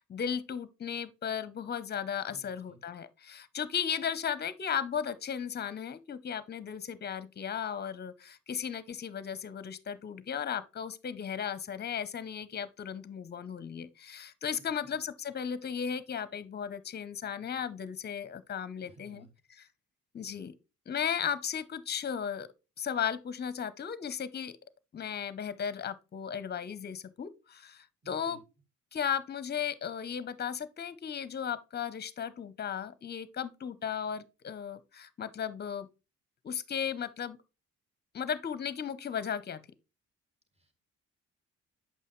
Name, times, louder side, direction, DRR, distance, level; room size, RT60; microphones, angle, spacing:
voice 1, 0.0-19.3 20.1-20.5 20.9-22.5 22.8-24.6 24.9-28.4 28.9-35.9 36.4-37.4 38.1-39.6, left 8 dB, 35° left, 0.7 m, -35 dB
voice 2, 2.3-2.8 14.6-15.0 18.8-19.3 28.0-28.4 40.5-40.7, right 2 dB, 20° right, 1.8 m, -57 dB
7.5 x 5.5 x 3.1 m
cardioid pair, 90°, 30 cm